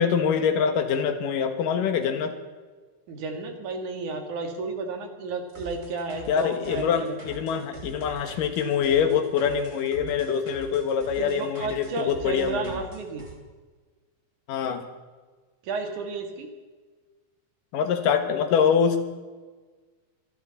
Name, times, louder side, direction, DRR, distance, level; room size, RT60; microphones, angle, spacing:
voice 1, 0.0-2.4 6.3-12.8 14.5-14.8 17.7-19.0, left 7 dB, 85° left, 8 dB, 3.0 m, -24 dB
voice 2, 3.1-7.1 11.2-13.3 15.6-16.5, right 4 dB, 70° right, 5 dB, 3.3 m, -32 dB
sound 1, 5.5-13.3, right 1 dB, 25° right, 2.6 m, -44 dB
26.0 x 12.0 x 4.1 m, 1.4 s
omnidirectional pair, 3.8 m